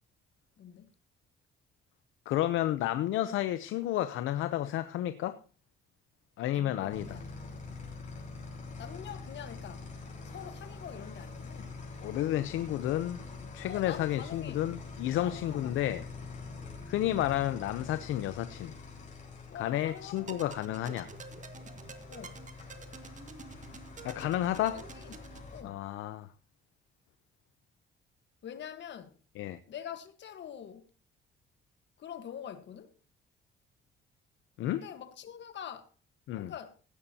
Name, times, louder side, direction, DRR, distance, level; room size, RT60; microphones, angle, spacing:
voice 1, 0.6-0.9 6.5-7.9 8.8-11.8 13.7-14.6 15.2-15.7 19.5-20.8 22.1-22.4 24.7-25.1 25.5-25.9 28.4-29.2 29.7-30.9 32.0-32.9 34.7-35.9 36.3-36.8, left 9 dB, 65° left, 1.4 m, -45 dB
voice 2, 2.3-5.4 6.4-7.2 12.0-13.2 13.5-16.1 16.9-18.7 19.5-21.1 24.0-24.8 25.6-26.3 29.4-29.6 34.6-34.8 36.3-36.5, left 13 dB, 85° left, 0.7 m, -31 dB
sound 1, 6.9-25.6, left 4 dB, 40° left, 6.3 m, -45 dB
sound 2, 20.1-25.5, right 5 dB, 40° right, 1.8 m, -49 dB
16.5 x 11.5 x 2.8 m
cardioid pair, 90°, 20 cm